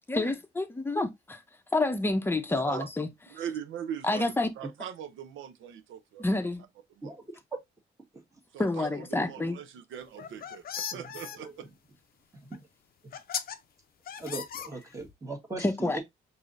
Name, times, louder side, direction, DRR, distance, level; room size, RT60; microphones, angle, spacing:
voice 1, 0.1-1.4 1.7-3.1 4.0-4.5 6.2-6.6 8.6-9.6 15.6-16.0, left 2 dB, 10° left, 0.7 m, -28 dB
voice 2, 2.5-2.9 3.3-6.2 7.0-7.2 8.5-11.7, right 9 dB, 80° right, 0.6 m, -41 dB
sound 1, 10.1-11.4 12.5-12.6 13.1-13.6 14.1-15.1, left 8 dB, 50° left, 0.5 m, -37 dB
voice 3, 14.2-16.0, right 3 dB, 15° right, 1.3 m, -39 dB
4.8 x 2.7 x 2.5 m
cardioid pair, 90°, 20 cm